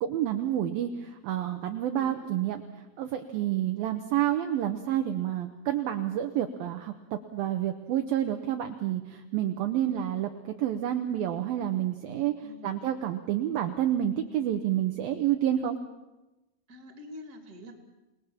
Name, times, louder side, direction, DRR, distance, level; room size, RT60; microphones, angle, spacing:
voice 1, 0.0-2.6 3.0-10.3 10.6-12.3 12.6-15.8, right 11 dB, 70° right, 6 dB, 2.4 m, -29 dB
voice 2, 12.4-12.9 16.7-17.9, left 2 dB, 25° right, 6 dB, 2.8 m, -46 dB
28.5 x 20.0 x 7.3 m, 1.0 s
omnidirectional pair, 5.2 m